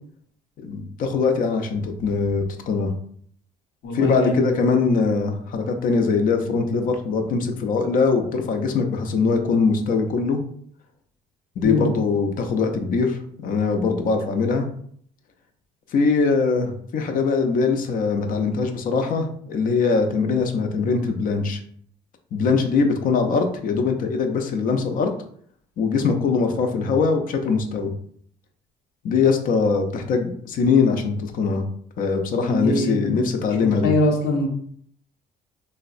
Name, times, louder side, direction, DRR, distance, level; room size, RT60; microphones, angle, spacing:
voice 1, 0.6-2.9 3.9-10.4 11.6-14.7 15.9-21.6 22.3-25.1 25.8-27.9 29.0-31.6 32.0-33.9, left 4 dB, 55° left, 6 dB, 0.5 m, -22 dB
voice 2, 3.8-4.5 11.6-11.9 32.4-33.3 33.8-34.5, left 1 dB, 85° left, -2 dB, 0.8 m, -22 dB
3.4 x 2.0 x 2.4 m, 0.62 s
cardioid pair, 110°, 17 cm